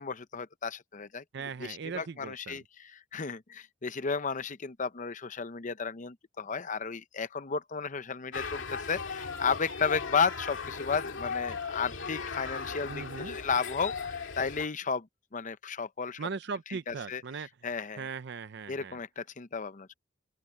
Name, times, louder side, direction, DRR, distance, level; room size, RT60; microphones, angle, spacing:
voice 1, 0.0-1.2 1.6-15.1 15.3-16.3 16.9-17.2 17.6-18.1 18.7-19.9, left 5 dB, 45° left, 0.7 m, -33 dB
voice 2, 1.3-2.6 12.9-13.4 16.2-17.5 18.0-19.0, right 5 dB, 65° right, 0.6 m, -39 dB
sound 1, 8.3-14.7, left 5 dB, 90° left, 2.3 m, -37 dB
open air
head